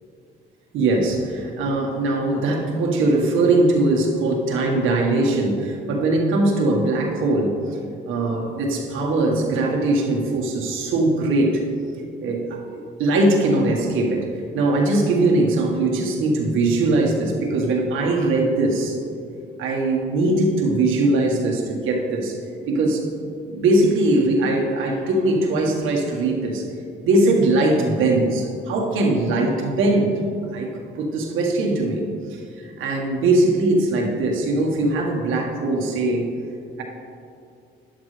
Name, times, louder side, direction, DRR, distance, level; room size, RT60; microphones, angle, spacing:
voice 1, 0.7-7.8 8.1-11.6 12.2-19.0 19.6-23.0 23.5-26.7 27.0-30.2 30.5-36.3, right 2 dB, 90° right, 0 dB, 1.8 m, -21 dB
12.0 x 11.0 x 3.4 m, 2.5 s
cardioid pair, 90°, 20 cm